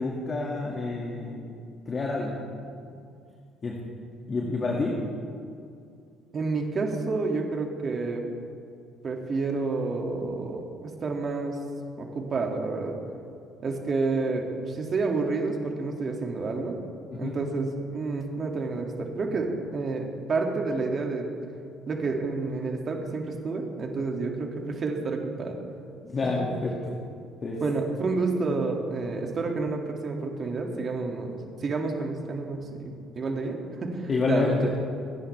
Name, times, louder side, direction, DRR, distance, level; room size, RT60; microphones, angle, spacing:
voice 1, 0.0-1.5 1.9-2.4 3.6-3.8 4.3-5.0 17.1-17.4 26.0-26.7 27.4-27.6 34.1-34.7, left 3 dB, 40° left, -2 dB, 2.2 m, -28 dB
voice 2, 6.3-8.3 9.0-11.6 12.0-13.0 13.6-16.8 17.1-21.3 21.9-25.6 27.6-34.8, right 3 dB, 45° right, 2 dB, 2.4 m, -29 dB
26.5 x 10.5 x 3.5 m, 2.4 s
supercardioid pair, 75°, 0 cm